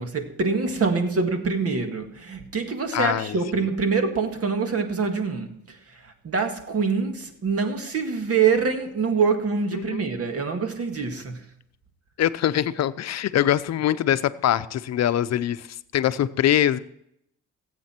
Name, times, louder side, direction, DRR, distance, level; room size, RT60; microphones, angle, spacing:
voice 1, 0.0-11.5, right 5 dB, 50° right, 6 dB, 1.9 m, -25 dB
voice 2, 2.9-3.4 9.7-10.0 12.2-15.7 15.9-16.8, left 11 dB, 60° left, 13 dB, 0.7 m, -23 dB
18.0 x 8.4 x 4.5 m, 0.75 s
cardioid pair, 90°, 30 cm